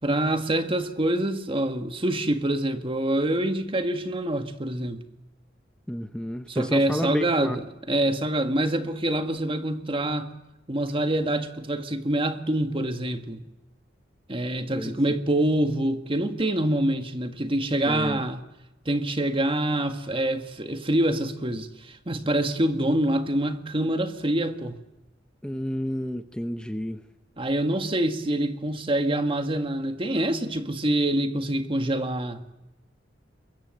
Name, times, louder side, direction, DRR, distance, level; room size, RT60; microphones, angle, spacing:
voice 1, 0.0-5.0 6.5-7.6 7.9-10.3 10.7-13.4 14.3-18.4 18.9-24.7 27.4-32.4, right 1 dB, 30° right, 1.8 m, -26 dB
voice 2, 5.9-7.6 14.7-15.0 17.8-18.2 25.4-27.0, equal, 5° left, 0.8 m, -30 dB
24.0 x 22.5 x 7.9 m
head